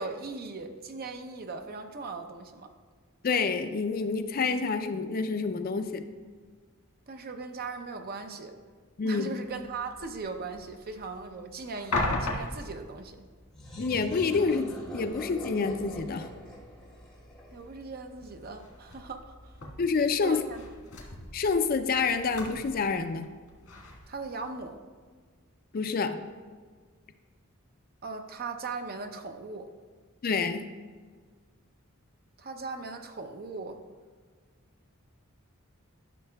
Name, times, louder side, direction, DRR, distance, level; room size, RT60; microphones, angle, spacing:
voice 1, 0.0-2.7 7.1-8.5 9.0-13.2 17.5-19.6 20.2-20.7 24.1-24.8 28.0-29.7 32.4-33.8, right 4 dB, 45° right, 6 dB, 0.6 m, -39 dB
voice 2, 3.2-6.0 9.0-9.4 13.8-16.3 19.8-20.4 21.3-23.3 25.7-26.2 30.2-30.7, left 4 dB, 45° left, 8 dB, 0.4 m, -28 dB
sound 1, 9.4-24.8, left 2 dB, 90° left, 1.7 m, -40 dB
sound 2, 13.5-18.1, equal, 5° left, 1.8 m, -42 dB
12.5 x 6.3 x 2.3 m, 1.6 s
head